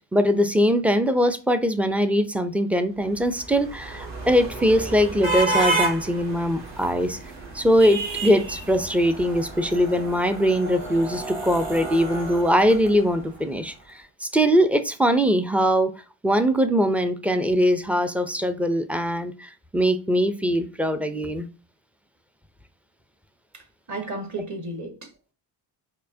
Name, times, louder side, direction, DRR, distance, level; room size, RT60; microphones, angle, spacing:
voice 1, 0.1-7.2 7.5-15.9 16.2-21.5, equal, 5° right, 0.3 m, -22 dB
sound 1, 3.1-13.4, right 2 dB, 65° right, 1.2 m, -31 dB
voice 2, 23.5-25.3, right 2 dB, 35° right, 1.4 m, -34 dB
4.5 x 2.1 x 2.6 m
supercardioid pair, 60°, 48 cm